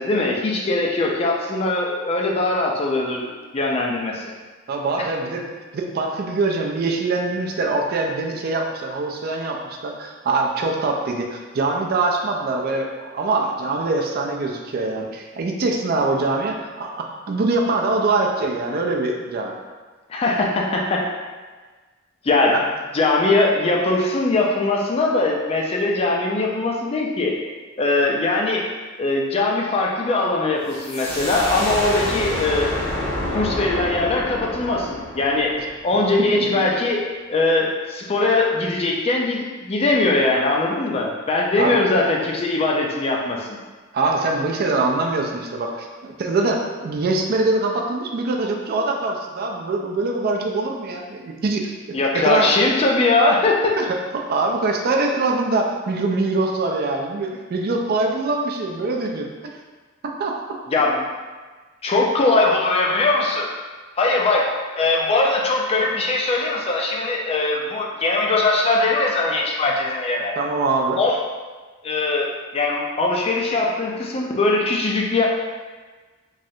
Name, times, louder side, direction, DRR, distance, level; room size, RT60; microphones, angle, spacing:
voice 1, 0.0-4.3 5.0-5.1 20.1-21.1 22.2-22.6 22.9-27.4 27.8-28.6 29.0-32.8 33.3-35.6 35.8-37.0 37.3-43.6 51.9-53.8 60.7-61.1 61.8-63.5 64.0-70.4 71.0-71.2 71.8-75.3, left 2 dB, 30° left, -1 dB, 0.4 m, -21 dB
voice 2, 4.7-5.4 5.7-19.6 22.5-22.6 35.6-35.7 36.4-36.5 41.6-41.8 43.9-45.9 46.2-52.5 53.8-59.3 60.2-60.6 70.4-71.0, right 3 dB, 50° right, 1 dB, 0.4 m, -23 dB
sound 1, 30.7-36.2, equal, 80° left, 1.3 m, -28 dB
3.1 x 2.5 x 2.7 m, 1.4 s
head